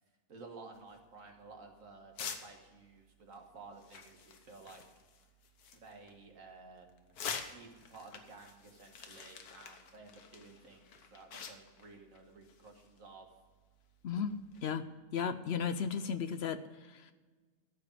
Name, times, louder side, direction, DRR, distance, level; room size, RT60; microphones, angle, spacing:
voice 1, 0.3-4.9 5.7-7.2 7.5-13.3, right 3 dB, 60° right, 3 dB, 1.8 m, -54 dB
sound 1, 0.7-14.6, left 6 dB, 90° left, 1.5 m, -49 dB
voice 2, 15.1-17.1, left 7 dB, 65° left, 11 dB, 0.6 m, -35 dB
13.0 x 5.0 x 8.6 m, 1.4 s
omnidirectional pair, 1.6 m